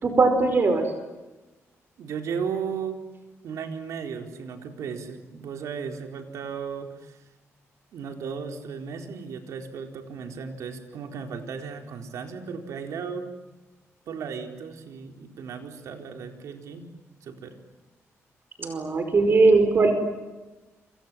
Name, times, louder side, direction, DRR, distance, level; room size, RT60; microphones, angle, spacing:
voice 1, 0.0-0.9 18.6-19.9, right 3 dB, 45° right, 7 dB, 5.0 m, -20 dB
voice 2, 2.0-3.0 3.4-7.2 7.9-13.2 14.1-16.9 17.2-17.5, right 6 dB, 85° right, 5 dB, 4.3 m, -35 dB
28.0 x 27.5 x 7.6 m, 1.1 s
cardioid pair, 105°, 5 cm